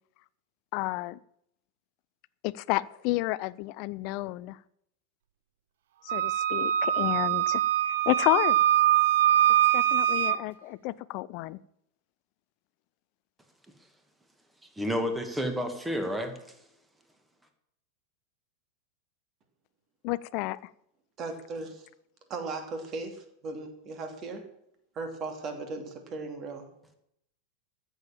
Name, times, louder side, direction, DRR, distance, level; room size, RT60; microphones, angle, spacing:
voice 1, 0.7-1.2 2.4-4.6 6.0-8.6 9.7-11.6 20.0-20.7, left 19 dB, 45° left, 20 dB, 0.4 m, -31 dB
Wind instrument woodwind instrument, 6.1-10.4, right 12 dB, 55° right, 0.6 m, -23 dB
voice 2, 14.8-16.4, equal, 5° right, 7 dB, 2.0 m, -30 dB
voice 3, 21.2-21.9 22.3-24.5 24.9-26.7, right 3 dB, 30° right, 6 dB, 2.7 m, -37 dB
14.5 x 7.1 x 7.3 m, 0.75 s
figure-of-eight pair, 90°, 0 cm